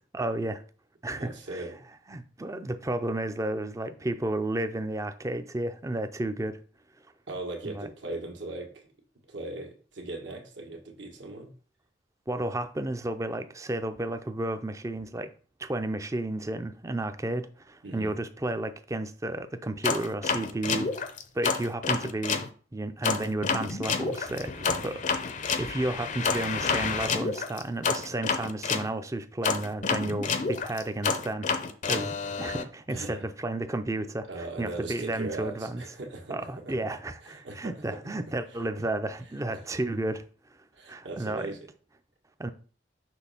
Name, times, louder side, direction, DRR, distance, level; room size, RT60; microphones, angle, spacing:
voice 1, 0.1-0.6 1.0-1.6 2.1-6.6 7.7-7.9 12.3-15.3 15.6-22.4 22.7-25.0 25.3-31.5 31.9-35.8 36.3-40.2 40.9-41.5 42.4-42.5, right 1 dB, 15° right, 0.4 m, -32 dB
voice 2, 1.1-1.8 7.3-8.9 9.3-11.5 17.8-18.1 24.6-24.8 32.9-33.2 34.3-38.1 38.5-38.8 39.5-39.7 40.7-41.7, right 2 dB, 75° right, 1.6 m, -39 dB
sound 1, 19.8-22.5 23.0-28.9 29.4-32.6, left 5 dB, 40° left, 0.6 m, -29 dB
6.2 x 3.2 x 5.6 m
head